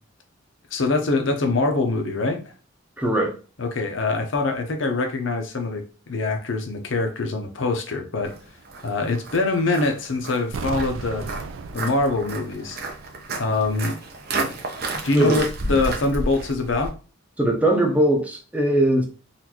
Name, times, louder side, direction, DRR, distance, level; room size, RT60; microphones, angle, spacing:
voice 1, 0.7-2.4 3.6-8.3 8.8-11.3 11.7-12.8 13.4-13.9 14.4-14.5 15.0-16.9, left 3 dB, 70° left, 0.7 m, -24 dB
voice 2, 3.0-3.3 15.1-15.4 17.4-19.0, right 1 dB, 5° right, 0.7 m, -20 dB
Walk footsteps, 8.3-16.9, right 2 dB, 50° right, 0.7 m, -32 dB
sound 1, 10.5-13.4 13.7-13.8, right 4 dB, 80° right, 0.4 m, -36 dB
4.1 x 2.6 x 2.9 m
head